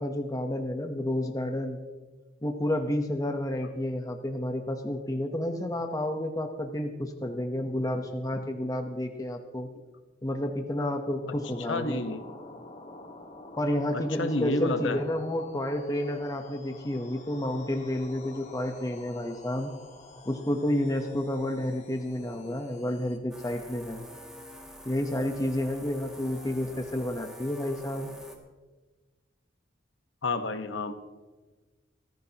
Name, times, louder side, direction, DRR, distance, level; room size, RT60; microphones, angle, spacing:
voice 1, 0.0-1.8 2.4-9.7 10.2-12.0 13.6-19.7 20.2-24.0 24.8-28.1, left 1 dB, 20° left, 4 dB, 0.9 m, -30 dB
sound 1, 11.2-23.2, left 2 dB, 40° left, 1.8 m, -48 dB
voice 2, 11.7-12.2 13.9-15.0 30.2-30.9, left 2 dB, 90° left, 9 dB, 1.2 m, -30 dB
sound 2, 23.3-28.4, equal, 5° right, 2.1 m, -47 dB
24.5 x 14.5 x 2.9 m, 1.3 s
head